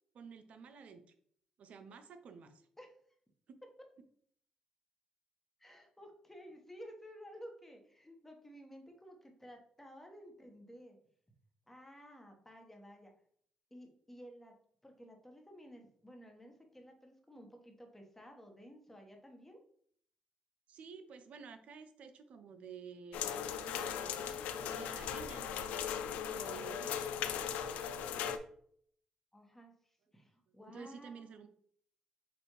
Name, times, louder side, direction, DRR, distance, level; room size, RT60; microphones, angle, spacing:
voice 1, 0.1-1.0 1.6-2.7 3.5-3.6 20.7-23.4 23.6-25.5 26.3-27.1 30.7-31.5, right 6 dB, 65° right, 8 dB, 0.5 m, -51 dB
voice 2, 5.6-11.0 11.7-13.1 13.7-14.5 14.8-19.6 29.3-31.2, equal, 10° left, 2 dB, 1.2 m, -54 dB
sound 1, 23.1-28.4, left 8 dB, 85° left, 0.4 m, -38 dB
6.6 x 2.5 x 3.1 m, 0.62 s
cardioid pair, 70°, 2 cm